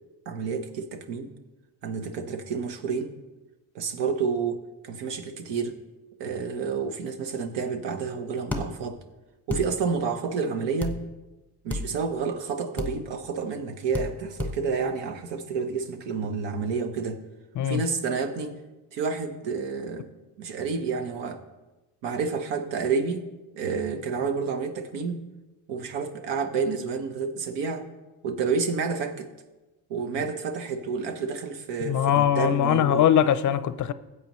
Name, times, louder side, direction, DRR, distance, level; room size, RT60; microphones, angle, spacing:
voice 1, 0.2-1.3 1.8-3.2 3.7-5.8 6.2-9.0 9.5-11.0 11.6-17.2 17.6-18.6 18.9-20.1 20.4-21.4 22.0-23.3 23.5-25.3 25.7-27.9 28.2-29.3 29.9-33.1, right 5 dB, 80° right, 1.2 m, -29 dB
sound 1, 8.5-8.6 9.5-9.7 10.8-11.0 11.7-11.9 12.8-12.9 13.9-14.1 14.4-14.5, left 2 dB, 5° left, 1.1 m, -29 dB
voice 2, 31.8-33.9, left 10 dB, 45° left, 0.5 m, -21 dB
15.5 x 8.0 x 3.1 m
cardioid pair, 95°, 42 cm